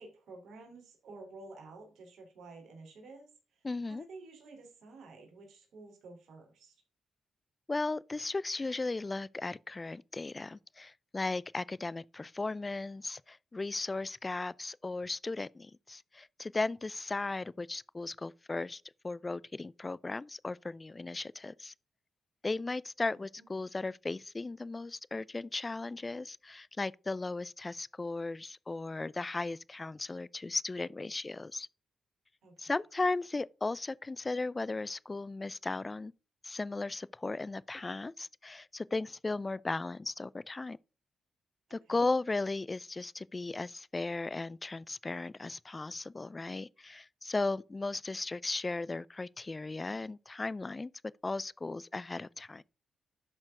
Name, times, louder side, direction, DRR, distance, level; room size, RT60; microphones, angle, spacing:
voice 1, 0.0-6.7 23.1-23.4 32.4-32.7 41.7-42.0, right 3 dB, 75° right, 3.3 m, -52 dB
voice 2, 3.6-4.0 7.7-21.7 22.4-31.7 32.6-36.1 36.4-40.8 41.7-50.9 51.2-52.6, left 3 dB, 30° left, 0.4 m, -36 dB
12.0 x 4.4 x 3.7 m
supercardioid pair, 55°, 0 cm